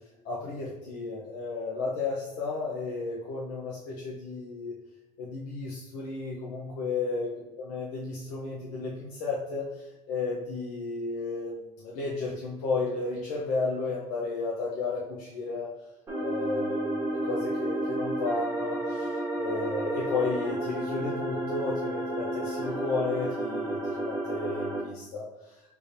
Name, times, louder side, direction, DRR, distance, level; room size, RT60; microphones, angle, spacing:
voice 1, 0.2-4.8 5.2-9.7 10.1-15.8 16.2-16.8 17.3-25.5, left 3 dB, 90° left, -5 dB, 0.9 m, -33 dB
sound 1, 16.1-24.8, right 1 dB, 20° right, 1.3 m, -31 dB
4.6 x 3.5 x 2.7 m, 1.0 s
cardioid pair, 165°, 13 cm